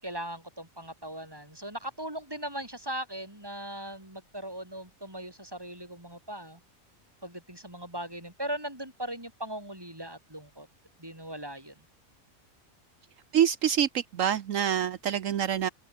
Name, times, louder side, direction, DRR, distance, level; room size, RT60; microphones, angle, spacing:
voice 1, 0.0-6.6 7.2-10.7 11.0-11.7, right 1 dB, 15° right, 5.5 m, -39 dB
voice 2, 13.3-15.7, right 9 dB, 70° right, 1.2 m, -26 dB
omnidirectional pair, 1.4 m